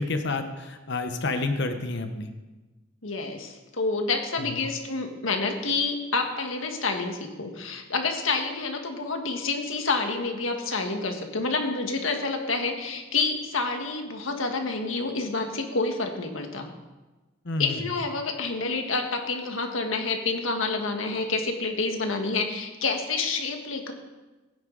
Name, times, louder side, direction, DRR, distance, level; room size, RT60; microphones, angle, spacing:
voice 1, 0.0-2.3 17.4-17.8, left 3 dB, 60° left, 7 dB, 1.0 m, -29 dB
voice 2, 3.0-16.7 17.6-23.9, left 3 dB, 85° left, 4 dB, 1.6 m, -28 dB
16.0 x 9.7 x 3.9 m, 1.2 s
head